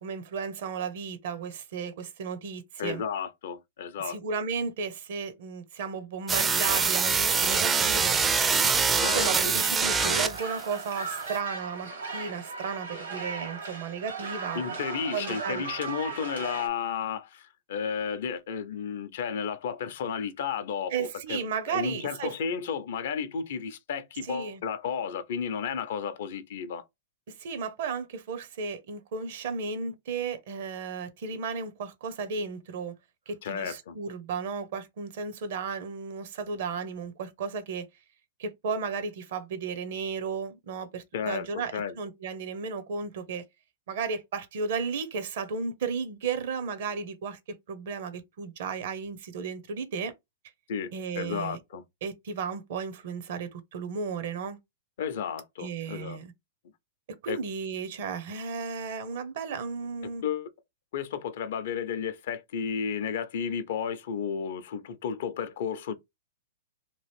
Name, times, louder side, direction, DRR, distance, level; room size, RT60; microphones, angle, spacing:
voice 1, 0.0-3.0 4.0-8.2 9.0-14.6 15.1-15.6 20.9-22.3 24.2-24.6 27.3-32.9 33.3-37.9 38.4-43.5 43.9-50.1 50.9-51.6 52.0-54.6 55.6-56.3 57.2-60.2, right 5 dB, 60° right, 0.7 m, -34 dB
voice 2, 2.8-4.2 9.0-9.5 14.5-21.4 21.7-26.8 33.4-34.0 41.1-41.5 41.7-41.9 50.7-51.8 55.0-56.2 57.3-57.4 60.2-60.5 60.9-65.9, left 7 dB, 65° left, 0.5 m, -33 dB
sound 1, 6.3-10.6, right 5 dB, 20° right, 0.4 m, -24 dB
sound 2, 9.5-16.7, right 4 dB, 85° right, 1.5 m, -37 dB
2.9 x 2.5 x 3.3 m
hypercardioid pair, 115°, 0 cm